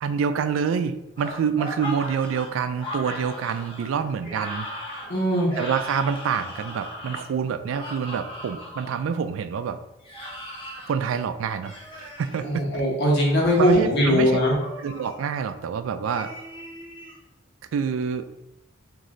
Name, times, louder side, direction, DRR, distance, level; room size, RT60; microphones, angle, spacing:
voice 1, 0.0-4.7 5.6-9.8 10.9-12.6 13.6-14.4 14.8-16.3 17.7-18.3, right 6 dB, 90° right, 11 dB, 0.3 m, -27 dB
sound 1, 1.2-9.0 10.0-10.9 11.6-12.4 13.2-13.9 14.6-15.1 16.0-17.2, left 1 dB, 25° left, 1.0 m, -38 dB
voice 2, 5.1-5.5 12.4-14.5, equal, 60° left, -3 dB, 1.2 m, -20 dB
3.1 x 2.6 x 3.7 m, 0.89 s
head